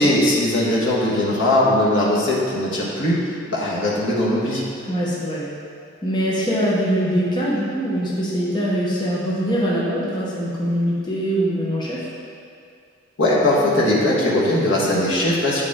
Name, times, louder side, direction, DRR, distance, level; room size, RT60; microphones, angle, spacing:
voice 1, 0.0-3.2 3.5-4.6 13.2-15.6, left 1 dB, 70° left, -6 dB, 1.4 m, -19 dB
voice 2, 4.8-5.4 6.0-12.0, equal, 20° left, -7 dB, 1.0 m, -22 dB
8.2 x 5.1 x 3.6 m, 2.4 s
head